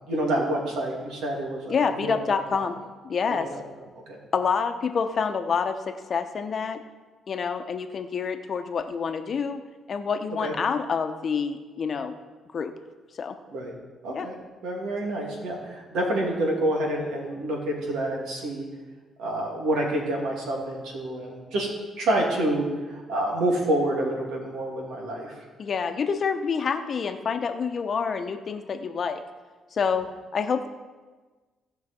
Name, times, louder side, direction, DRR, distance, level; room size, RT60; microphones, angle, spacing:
voice 1, 0.0-2.2 2.5-2.7 3.3-3.4 4.1-4.2 10.4-10.5 13.5-13.7 14.0-14.3 14.6-18.7 19.2-21.7 22.0-25.4, right 1 dB, 85° right, -1 dB, 2.6 m, -28 dB
voice 2, 1.7-2.8 3.0-3.5 4.3-6.8 7.3-9.6 9.9-12.1 12.5-12.7 13.2-13.4 14.1-14.3 25.6-29.2 29.7-30.7, left 6 dB, 50° left, 7 dB, 0.8 m, -27 dB
17.0 x 5.7 x 4.4 m, 1.3 s
cardioid pair, 90°, 0 cm